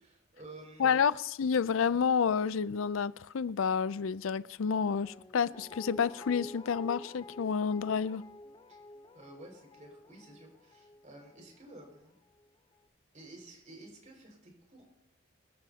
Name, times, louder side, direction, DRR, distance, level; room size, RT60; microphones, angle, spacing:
voice 1, 0.0-1.1 8.7-8.8 9.1-12.2 13.1-14.8, right 2 dB, 40° right, 5.4 m, -52 dB
voice 2, 0.8-8.2, left 6 dB, 90° left, 0.4 m, -29 dB
Guitar, 5.0-12.1 12.4-12.5, left 2 dB, 25° left, 0.7 m, -49 dB
25.5 x 14.0 x 2.9 m
head